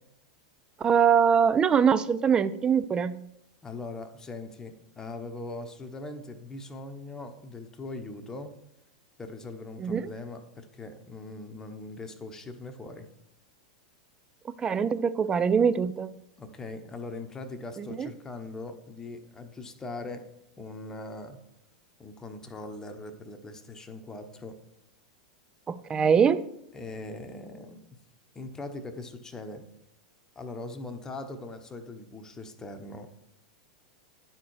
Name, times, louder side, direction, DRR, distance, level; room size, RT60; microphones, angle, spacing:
voice 1, 0.8-3.2 9.8-10.1 14.4-16.1 17.8-18.1 25.7-26.4, right 7 dB, 20° right, 0.4 m, -23 dB
voice 2, 3.6-8.5 9.2-13.1 16.4-20.3 20.6-21.4 22.0-24.6 26.7-27.8 28.3-29.6 30.3-33.1, left 2 dB, 15° left, 1.0 m, -41 dB
10.5 x 4.4 x 4.7 m
hypercardioid pair, 100°, 4 cm